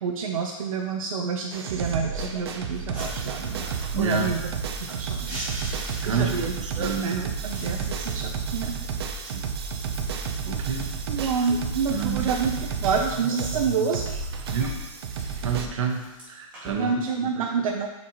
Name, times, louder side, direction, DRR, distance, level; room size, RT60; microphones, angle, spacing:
voice 1, 0.0-3.6 4.0-4.6 4.9-5.5 6.0-8.7 11.1-14.2 16.8-17.9, right 5 dB, 90° right, 1 dB, 0.6 m, -28 dB
sound 1, 1.5-15.7, right 5 dB, 50° right, 0.6 m, -31 dB
sound 2, 2.7-4.0 4.3-6.7 7.0-11.6 12.0-13.8 14.2-17.1, right 1 dB, 10° right, 2.0 m, -43 dB
voice 2, 3.9-4.3 6.0-7.1 10.4-10.9 11.2-11.6 11.9-12.3 14.5-14.7 15.4-17.4, right 5 dB, 65° right, 2 dB, 1.1 m, -29 dB
7.3 x 4.4 x 3.0 m, 1.0 s
hypercardioid pair, 175°, 17 cm